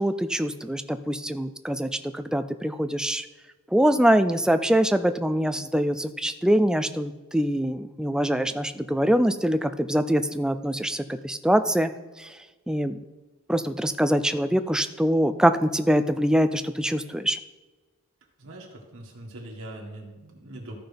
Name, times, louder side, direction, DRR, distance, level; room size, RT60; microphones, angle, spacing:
voice 1, 0.0-3.3 3.7-11.9 12.2-12.4 12.7-13.0 13.5-17.4, equal, 5° right, 9 dB, 0.3 m, -24 dB
voice 2, 18.4-20.8, right 1 dB, 65° right, -1 dB, 1.6 m, -41 dB
14.0 x 5.7 x 3.5 m, 1.3 s
head